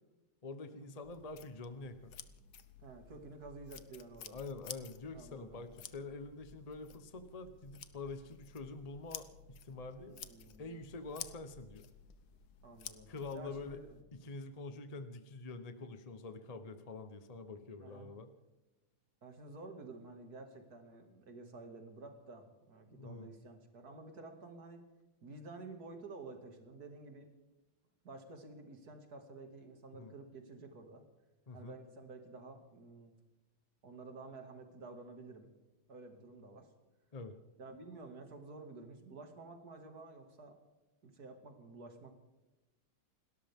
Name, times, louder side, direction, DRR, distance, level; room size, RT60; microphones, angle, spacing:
voice 1, 0.4-2.1 4.3-10.2 10.6-11.9 13.1-13.8 14.1-18.3 22.9-23.3 29.9-30.1 31.5-31.8 37.1-37.4, left 3 dB, 40° left, 9 dB, 0.5 m, -46 dB
sound 1, 1.0-14.0, left 8 dB, 60° left, 1.2 m, -53 dB
voice 2, 2.8-4.4 5.1-5.6 10.1-10.8 12.6-14.0 17.8-18.1 19.2-24.8 25.2-27.3 28.0-31.0 31.5-33.1 33.8-35.5 35.9-36.7 37.6-40.6 41.0-42.2, right 3 dB, 45° right, 5 dB, 2.6 m, -51 dB
29.0 x 13.0 x 3.6 m, 1.1 s
omnidirectional pair, 2.3 m